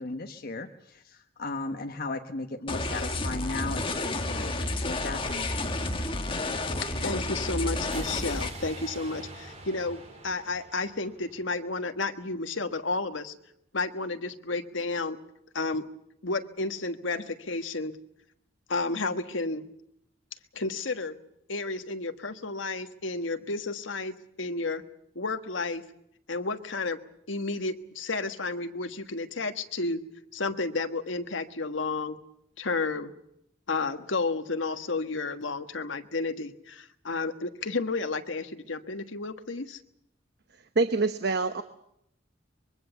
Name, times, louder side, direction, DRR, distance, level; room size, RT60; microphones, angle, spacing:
voice 1, 0.0-5.9, left 3 dB, 55° left, 4 dB, 1.2 m, -36 dB
sound 1, 2.7-8.5, left 2 dB, 30° left, 1.8 m, -31 dB
voice 2, 7.0-13.3 13.7-15.2 15.5-15.8 16.2-17.9 18.7-19.7 20.5-21.2 21.5-24.8 25.1-25.8 26.3-27.0 27.3-30.0 30.3-32.2 32.6-33.1 33.7-39.8, left 3 dB, 80° left, 8 dB, 1.4 m, -31 dB
sound 2, 7.9-12.0, right 2 dB, 35° right, 4.3 m, -45 dB
voice 3, 40.8-41.6, right 3 dB, 60° right, 9 dB, 1.0 m, -25 dB
24.5 x 22.5 x 7.0 m, 0.77 s
head